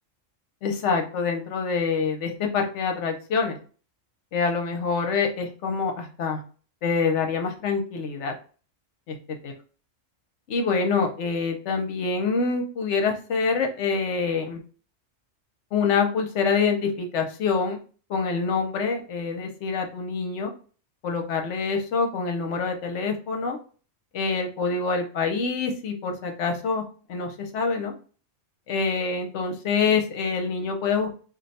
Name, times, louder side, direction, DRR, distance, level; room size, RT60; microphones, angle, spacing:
voice 1, 0.6-3.6 4.3-6.4 6.8-8.3 9.1-9.2 10.5-14.6 15.7-17.8 18.1-20.5 21.0-23.6 24.1-26.8 27.1-27.9 28.7-31.2, left 5 dB, 70° left, 4 dB, 1.0 m, -26 dB
2.5 x 2.2 x 4.0 m, 0.39 s
omnidirectional pair, 1.3 m